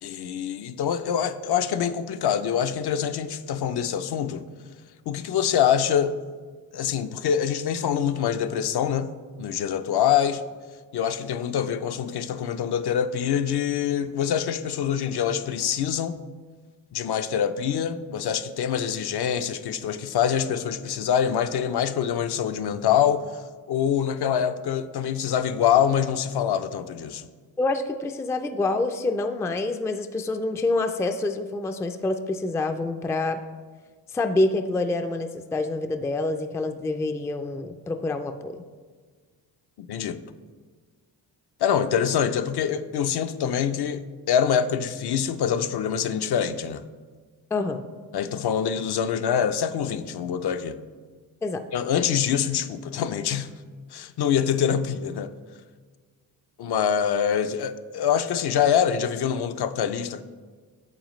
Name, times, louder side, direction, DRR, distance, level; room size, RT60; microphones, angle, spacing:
voice 1, 0.0-4.5 5.1-6.2 6.7-10.4 10.9-16.2 16.9-27.3 39.8-40.2 41.6-46.9 48.1-50.8 51.7-53.5 53.9-55.3 56.6-60.2, left 8 dB, 60° left, 0.6 m, -25 dB
voice 2, 27.6-33.4 34.1-38.6 47.5-47.8 51.4-51.6, left 2 dB, 5° left, 0.3 m, -27 dB
9.0 x 7.2 x 3.1 m
cardioid pair, 95°, 44 cm